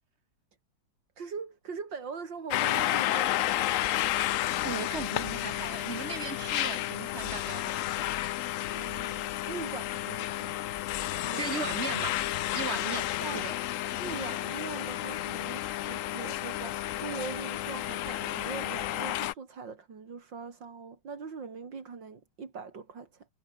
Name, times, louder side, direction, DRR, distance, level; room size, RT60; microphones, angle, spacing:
voice 1, 1.2-3.4 8.7-10.6 11.2-11.4 13.0-13.5 14.0-23.3, right 5 dB, 80° right, 3.4 m, -41 dB
sound 1, 2.5-19.3, left 14 dB, 90° left, 0.7 m, -31 dB
voice 2, 4.6-8.1 11.4-12.2 12.5-13.1 13.3-13.5, right 5 dB, 35° right, 1.9 m, -37 dB
omnidirectional pair, 2.0 m